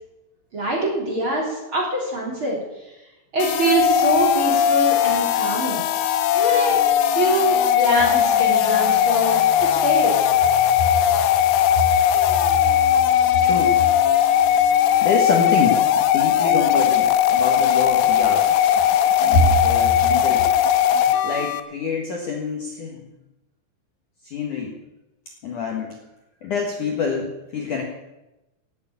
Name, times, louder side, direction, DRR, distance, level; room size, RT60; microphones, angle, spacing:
voice 1, 0.5-2.6 3.3-5.8 6.3-6.8 7.1-10.3, right 2 dB, 30° right, -2 dB, 3.0 m, -24 dB
sound 1, 3.4-21.6, left 10 dB, 85° left, 2.3 m, -18 dB
voice 2, 13.4-13.8 15.0-15.8 16.1-18.5 19.2-20.5 21.2-23.0 24.2-24.8 25.4-26.0 26.4-27.8, left 3 dB, 55° left, 1 dB, 2.4 m, -25 dB
18.0 x 8.6 x 8.4 m, 0.97 s
omnidirectional pair, 5.6 m